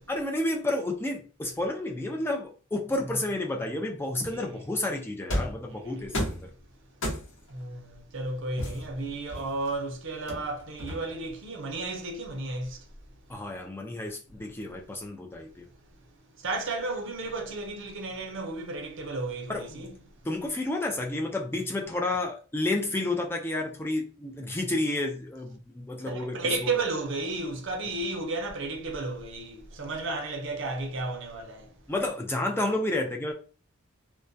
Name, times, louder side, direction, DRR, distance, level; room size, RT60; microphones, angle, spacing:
voice 1, 0.1-6.2 6.4-6.5 13.3-15.7 19.5-19.9 20.2-26.4 26.6-26.7 31.9-33.3, left 2 dB, 10° left, 0.3 m, -31 dB
sound 1, 5.3-5.7 6.1-6.5 7.0-7.5 8.6-9.7 10.3-11.3, equal, 60° left, 0.8 m, -32 dB
voice 2, 5.7-6.4 7.5-12.9 13.3-13.4 15.9-16.0 16.4-20.1 26.0-31.8, right 2 dB, 60° right, 0.6 m, -33 dB
2.2 x 2.1 x 2.6 m
head